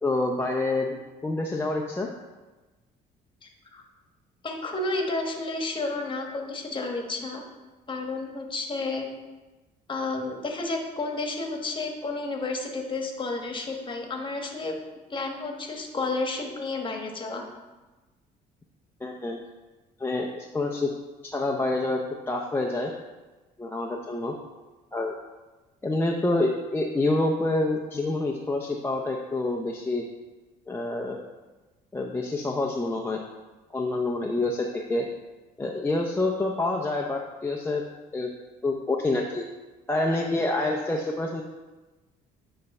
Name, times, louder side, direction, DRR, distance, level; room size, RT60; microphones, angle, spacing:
voice 1, 0.0-2.1 19.0-19.4 20.0-20.9 21.2-22.0 22.3-22.9 23.6-24.4 24.9-25.2 25.8-30.0 30.7-31.2 31.9-33.2 33.7-35.1 35.6-37.8 38.1-38.3 38.6-39.4 39.9-41.4, left 2 dB, 15° left, -1 dB, 0.6 m, -27 dB
voice 2, 3.4-3.8 4.4-7.4 7.9-9.1 9.9-14.7 15.1-17.4, left 3 dB, 30° left, 2 dB, 1.3 m, -31 dB
9.2 x 3.3 x 5.3 m, 1.2 s
cardioid pair, 110°, 17 cm